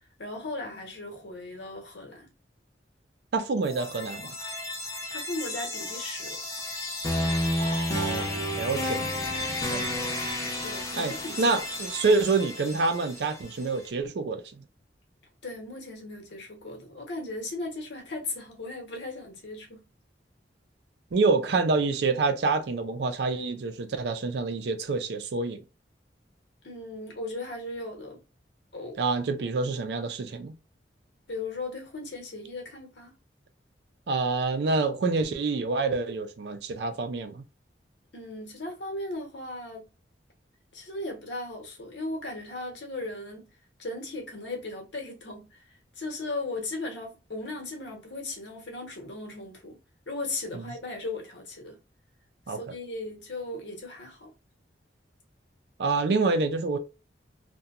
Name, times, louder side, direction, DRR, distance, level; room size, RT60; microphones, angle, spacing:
voice 1, 0.2-2.3 5.1-6.4 10.6-11.5 15.4-19.9 26.6-28.2 28.7-29.0 31.3-33.1 38.1-39.8 40.7-43.5 43.8-45.5 46.0-49.8 50.1-51.8 52.5-54.3, left 2 dB, 85° left, 0.9 m, -37 dB
voice 2, 3.3-4.3 7.6-9.1 9.7-9.9 11.0-14.6 21.1-25.6 29.0-30.6 34.1-37.4 50.5-50.7 52.5-52.6 55.8-56.8, right 3 dB, 70° right, 0.4 m, -27 dB
sound 1, 3.6-13.6, left 1 dB, 15° left, 0.6 m, -32 dB
2.8 x 2.2 x 2.3 m
head